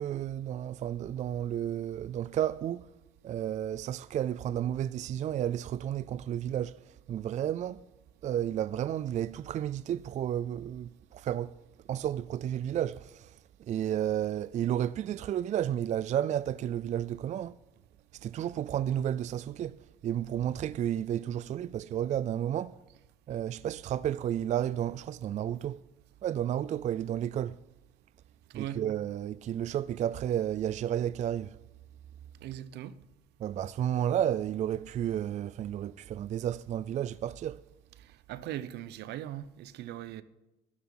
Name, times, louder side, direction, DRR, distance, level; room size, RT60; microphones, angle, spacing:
voice 1, 0.0-2.9 3.2-7.8 8.2-11.5 11.9-13.4 13.7-17.6 18.2-19.8 20.0-22.7 23.3-25.8 26.2-27.6 28.5-31.6 33.4-37.6, right 10 dB, 45° right, 0.4 m, -32 dB
voice 2, 32.4-33.0 38.0-40.2, right 12 dB, 80° right, 0.8 m, -40 dB
12.5 x 11.0 x 5.5 m
cardioid pair, 110°, 17 cm